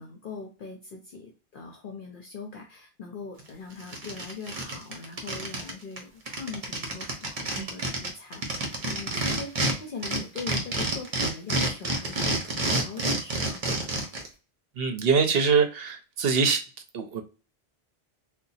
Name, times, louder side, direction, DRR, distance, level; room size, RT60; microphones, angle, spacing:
voice 1, 0.0-13.6, left 4 dB, 60° left, 2 dB, 0.7 m, -41 dB
sound 1, 3.4-3.5 3.8-5.7 6.0-6.1 6.3-9.7 10.0-14.3, right 2 dB, 40° right, 0.8 m, -28 dB
voice 2, 14.8-16.6 16.9-17.2, right 5 dB, 70° right, 6 dB, 0.8 m, -23 dB
2.7 x 2.2 x 4.0 m, 0.35 s
omnidirectional pair, 1.1 m